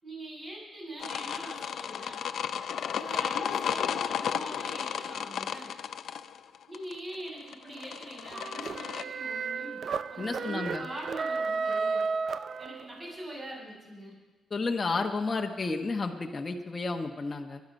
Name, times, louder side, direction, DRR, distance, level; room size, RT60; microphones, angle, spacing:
voice 1, 0.0-2.2 2.9-5.7 6.7-9.8 10.1-12.1 12.6-14.2, right 1 dB, 35° right, -3 dB, 7.1 m, -43 dB
sound 1, 1.0-9.0, left 8 dB, 75° left, 0.6 m, -33 dB
sound 2, 8.3-13.1, right 4 dB, 50° right, 0.5 m, -33 dB
voice 2, 10.2-10.8 14.5-17.6, left 3 dB, 30° left, 1 dB, 1.1 m, -31 dB
24.5 x 10.5 x 5.3 m, 1.3 s
cardioid pair, 115°, 0 cm